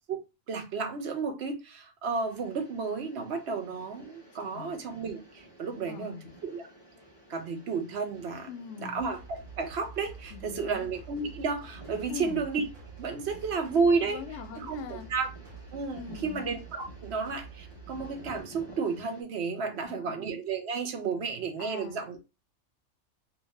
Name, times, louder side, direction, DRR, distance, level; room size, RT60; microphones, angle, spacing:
voice 1, 0.5-6.2 6.4-6.7 7.3-8.5 8.8-12.6 13.0-14.2 14.7-15.3 15.7-22.2, right 4 dB, 60° right, 1.0 m, -32 dB
sound 1, 2.0-19.2, right 1 dB, 20° right, 1.3 m, -53 dB
voice 2, 4.4-4.8 5.7-6.3 8.5-9.0 10.3-10.9 12.1-12.5 14.0-15.1 15.9-16.4 19.7-20.2 21.6-22.0, left 7 dB, 75° left, 0.9 m, -42 dB
sound 2, 9.0-18.4, right 5 dB, 80° right, 1.7 m, -48 dB
3.6 x 2.8 x 3.2 m
omnidirectional pair, 1.3 m